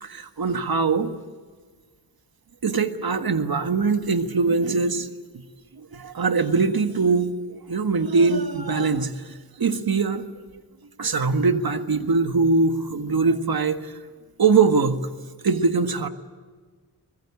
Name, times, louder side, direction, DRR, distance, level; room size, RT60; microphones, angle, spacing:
voice 1, 0.0-1.1 2.6-5.1 5.3-5.4 5.7-10.3 10.5-10.6 11.0-14.0 14.4-15.1 15.4-16.1, right 4 dB, 60° right, 8 dB, 1.7 m, -22 dB
24.5 x 20.0 x 8.5 m, 1.5 s
cardioid pair, 70°, 40 cm